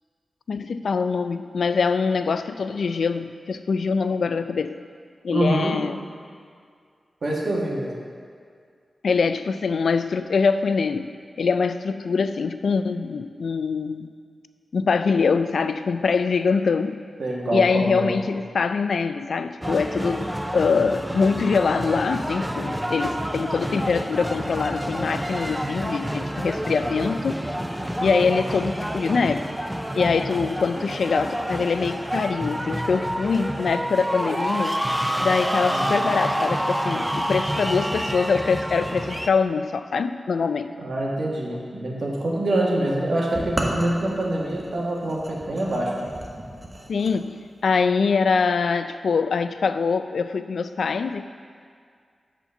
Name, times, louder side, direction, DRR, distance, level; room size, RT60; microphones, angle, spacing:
voice 1, 0.5-4.8 5.2-5.9 9.0-14.1 14.7-17.0 17.5-27.4 28.0-29.4 30.0-34.8 35.2-40.7 46.9-51.3, left 5 dB, 80° left, 10 dB, 0.3 m, -23 dB
voice 2, 5.3-5.8 7.2-7.9 17.2-18.2 35.7-36.1 40.8-46.1, right 1 dB, 65° right, -3 dB, 1.7 m, -25 dB
sound 1, 19.6-39.3, equal, 5° right, 0.4 m, -28 dB
sound 2, 43.3-47.1, right 1 dB, 25° right, 1.0 m, -33 dB
8.2 x 4.4 x 6.8 m, 2.2 s
wide cardioid pair, 100°, 0 cm